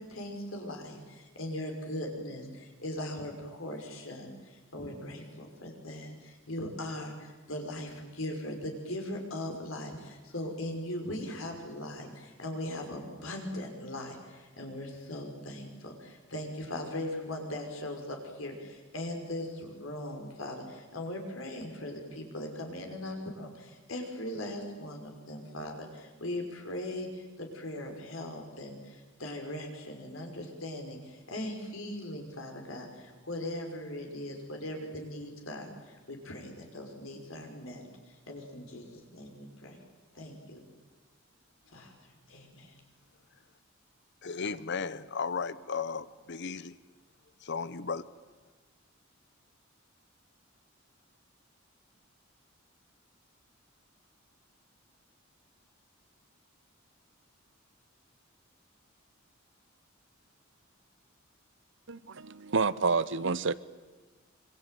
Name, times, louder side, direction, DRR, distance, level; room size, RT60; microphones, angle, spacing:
voice 1, 0.0-37.9 38.3-38.9 39.1-39.8 40.1-40.6 41.7-42.7, left 1 dB, 75° left, 3 dB, 5.7 m, -39 dB
voice 2, 44.2-46.7 47.4-48.1, left 5 dB, 60° left, 16 dB, 0.9 m, -35 dB
voice 3, 61.9-63.5, right 4 dB, 65° right, 17 dB, 0.9 m, -29 dB
26.0 x 24.5 x 9.3 m, 1.2 s
head